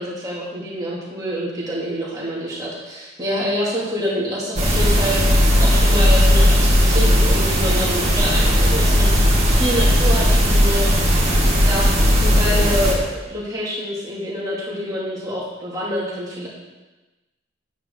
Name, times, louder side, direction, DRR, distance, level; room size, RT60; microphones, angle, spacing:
voice 1, 0.0-5.2 5.6-10.9 11.6-16.5, equal, 20° right, -7 dB, 2.5 m, -26 dB
sound 1, 4.6-12.9, equal, 35° right, 2.1 m, -16 dB
9.2 x 8.8 x 3.7 m, 1.1 s
head